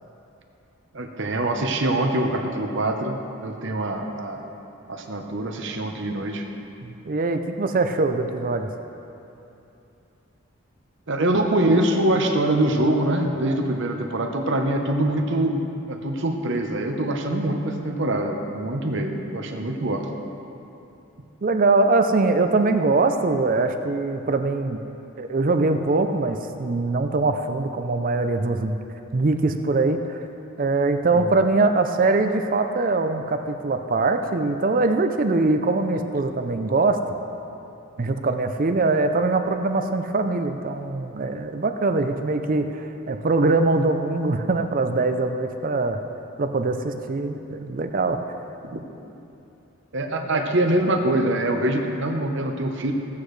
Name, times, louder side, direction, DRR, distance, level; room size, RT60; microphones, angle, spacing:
voice 1, 0.9-4.5 4.9-6.5 11.1-20.1 31.1-31.4 48.7-48.8 49.9-52.9, right 1 dB, 55° right, 3 dB, 0.9 m, -24 dB
voice 2, 6.8-8.7 13.4-13.6 21.4-24.8 25.2-28.8 29.1-30.3 30.6-37.0 38.0-46.0 46.4-48.2, right 3 dB, 40° right, 7 dB, 0.5 m, -22 dB
15.5 x 8.4 x 3.2 m, 2.8 s
head